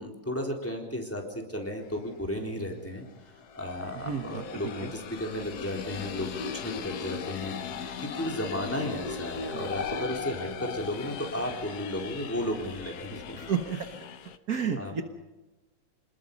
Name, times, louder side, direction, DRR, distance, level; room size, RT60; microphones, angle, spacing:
voice 1, 0.0-3.1 3.5-13.4 13.7-13.8 14.8-15.0, left 1 dB, 5° left, 1 dB, 3.8 m, -34 dB
sound 1, 1.9-2.0 3.1-14.4, left 6 dB, 60° left, 1.5 m, -38 dB
voice 2, 4.1-4.4 4.8-4.9 9.5-9.6 13.4-13.8 14.5-15.0, right 7 dB, 55° right, 5 dB, 1.7 m, -30 dB
27.0 x 20.5 x 5.5 m, 1.1 s
omnidirectional pair, 2.0 m